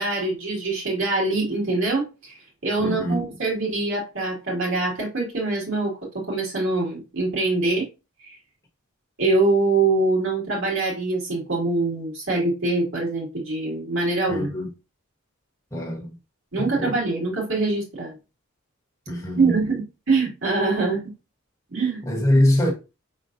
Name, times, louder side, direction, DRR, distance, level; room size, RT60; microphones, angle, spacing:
voice 1, 0.0-2.4 2.6-7.9 8.2-8.4 9.2-14.5 16.5-18.1 19.4-21.0 21.7-22.0, right 3 dB, 70° right, 2.1 m, -24 dB
voice 2, 2.8-3.2 14.3-14.7 15.7-16.1 16.6-17.0 19.1-19.6 22.1-22.7, left 1 dB, 15° left, 1.0 m, -23 dB
4.9 x 3.8 x 2.6 m
head